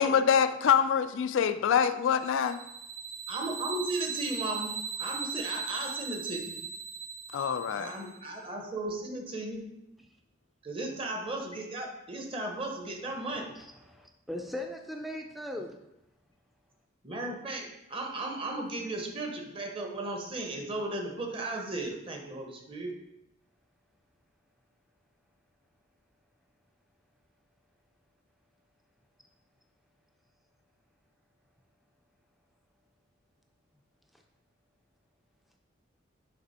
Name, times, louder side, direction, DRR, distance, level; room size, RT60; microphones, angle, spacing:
voice 1, 0.0-2.6 7.3-7.9, left 7 dB, 65° left, 0.3 m, -25 dB
sound 1, 2.2-8.2, right 6 dB, 70° right, 0.7 m, -38 dB
voice 2, 3.3-6.5 7.7-9.6 10.6-13.5 17.0-22.9, right 2 dB, 25° right, 0.8 m, -36 dB
voice 3, 13.6-15.7, left 1 dB, ahead, 0.5 m, -39 dB
6.8 x 3.4 x 4.2 m
head